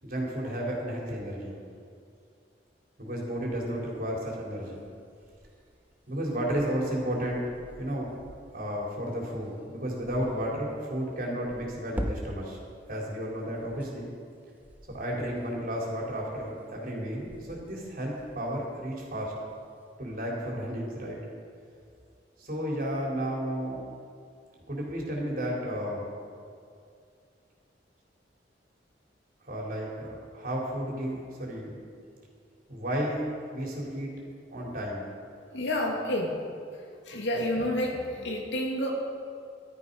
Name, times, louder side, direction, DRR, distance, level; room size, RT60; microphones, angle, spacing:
voice 1, 0.0-1.6 3.0-4.8 6.1-7.5 7.8-8.1 8.5-12.6 12.9-14.1 14.9-19.3 20.0-21.2 22.4-23.8 24.6-26.1 29.4-31.8 32.7-34.1 34.5-35.1, equal, 55° right, -3 dB, 3.7 m, -32 dB
sound 1, 3.5-9.1 9.7-10.4 11.3-14.1 14.4-16.9 17.1-18.7 19.1-19.8, equal, 10° right, 0.9 m, -44 dB
voice 2, 35.3-36.4 36.7-38.9, left 1 dB, 80° left, -1 dB, 2.5 m, -30 dB
14.0 x 13.0 x 5.4 m, 2.3 s
head